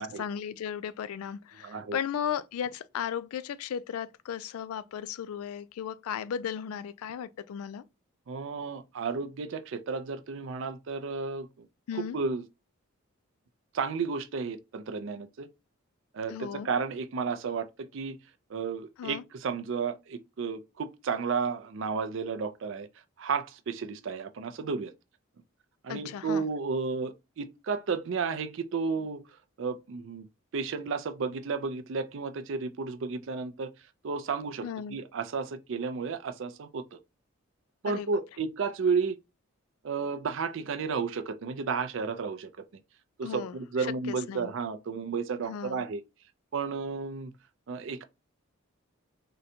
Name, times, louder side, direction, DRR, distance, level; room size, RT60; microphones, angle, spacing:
voice 1, 0.0-7.8 11.9-12.2 16.3-16.7 19.0-19.2 25.9-26.4 34.6-35.0 37.9-38.1 43.2-44.5 45.5-45.8, left 8 dB, 85° left, 0.3 m, -36 dB
voice 2, 1.6-2.0 8.3-11.7 11.9-12.4 13.7-15.5 16.1-18.2 18.5-22.9 23.2-24.9 25.8-29.2 29.6-30.3 30.5-33.7 34.0-34.6 34.9-37.0 37.8-39.2 39.8-42.5 43.2-46.0 46.5-47.3 47.7-48.0, right 5 dB, 60° right, 0.4 m, -32 dB
3.8 x 2.2 x 2.7 m
head